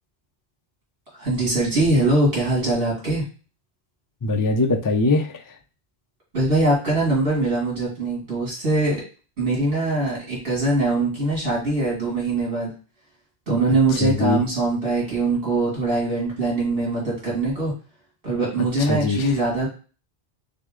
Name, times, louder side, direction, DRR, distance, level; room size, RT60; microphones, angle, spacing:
voice 1, 1.1-3.2 6.3-9.0 9.4-12.7 13.5-17.7 18.2-19.7, right 2 dB, 60° right, -6 dB, 2.6 m, -22 dB
voice 2, 4.2-5.4 14.0-14.4 18.8-19.3, left 3 dB, 30° left, 3 dB, 0.3 m, -22 dB
6.1 x 2.1 x 3.7 m, 0.37 s
omnidirectional pair, 1.1 m